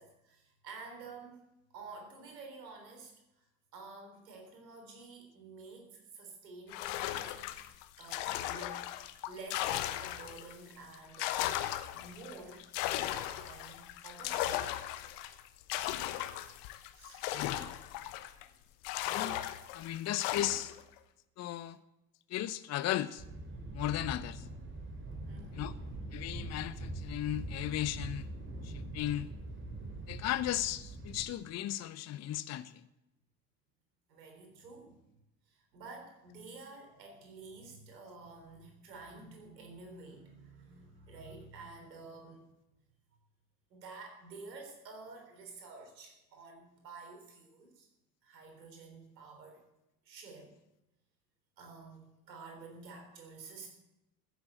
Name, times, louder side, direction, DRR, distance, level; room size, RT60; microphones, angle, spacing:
voice 1, 0.0-1.4 1.7-3.5 3.7-7.4 8.0-11.6 11.9-12.7 13.0-14.8 16.9-17.3 25.1-26.1 34.1-35.0 35.5-42.5 43.7-47.9 48.2-49.6 50.0-50.5 51.6-53.7, right 3 dB, 75° right, 3 dB, 3.8 m, -50 dB
sound 1, 6.7-10.6 10.9-18.4 18.8-20.8, left 13 dB, 55° left, 1.2 m, -37 dB
voice 2, 17.3-17.7 19.1-19.4 19.7-20.7 21.4-21.8 22.3-23.2 23.7-24.4 25.5-25.7 26.1-28.3 28.9-29.3 30.1-32.7, left 13 dB, 35° left, 15 dB, 0.7 m, -35 dB
Thunder, 23.2-31.2, right 2 dB, 25° right, 3.2 m, -43 dB
14.0 x 8.1 x 8.1 m, 0.93 s
figure-of-eight pair, 65°, 50 cm